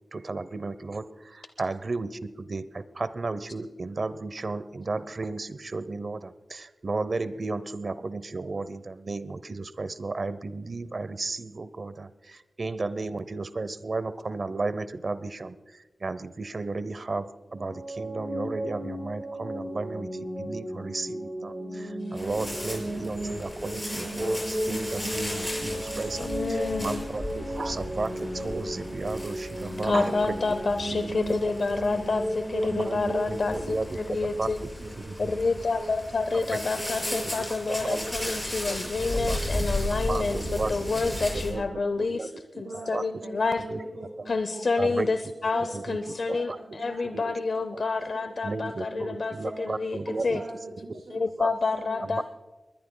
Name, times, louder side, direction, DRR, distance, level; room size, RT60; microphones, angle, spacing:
voice 1, 0.1-30.4 31.0-31.1 32.6-33.0 33.3-34.7 35.0-35.2 36.3-36.6 37.2-37.5 37.8-38.0 38.7-38.8 39.3-39.4 40.0-40.7 41.5-41.6 42.0-42.3 42.5-42.6 42.9-43.1 43.7-43.8 44.8-45.1 45.7-46.0 46.5-46.6 47.0-47.2 47.7-47.8 48.4-50.4 50.9-51.0 51.4-51.5 52.0-52.2, right 3 dB, 50° right, 15 dB, 0.7 m, -34 dB
sound 1, 17.5-33.7, equal, 30° right, 5.3 m, -34 dB
sound 2, 22.2-41.5, left 1 dB, 10° left, 6.2 m, -36 dB
voice 2, 26.2-27.1 29.8-34.6 35.2-40.4 40.7-42.3 42.6-43.6 44.3-45.2 45.4-50.4 51.1-52.2, left 3 dB, 65° left, 9 dB, 0.6 m, -28 dB
voice 3, 31.2-32.1 32.7-36.2 36.7-45.1 45.5-47.8 48.1-48.5 48.9-52.0, right 2 dB, 80° right, -5 dB, 4.5 m, -42 dB
21.0 x 21.0 x 2.2 m, 1.2 s
wide cardioid pair, 100°, 0 cm